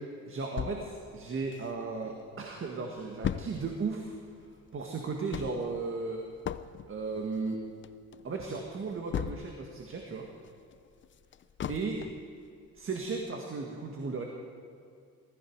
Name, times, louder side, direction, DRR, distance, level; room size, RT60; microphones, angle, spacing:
voice 1, 0.3-4.2 4.7-6.2 6.9-7.6 8.2-10.3 11.7-12.1 12.8-14.2, right 4 dB, 45° right, 1 dB, 1.8 m, -35 dB
sound 1, 0.6-2.1 2.5-2.6 2.8-9.8 10.2-12.3 12.8-12.9 13.3-13.4, left 9 dB, 40° left, 0.5 m, -39 dB
19.0 x 14.5 x 4.7 m, 2.4 s
cardioid pair, 90°, 30 cm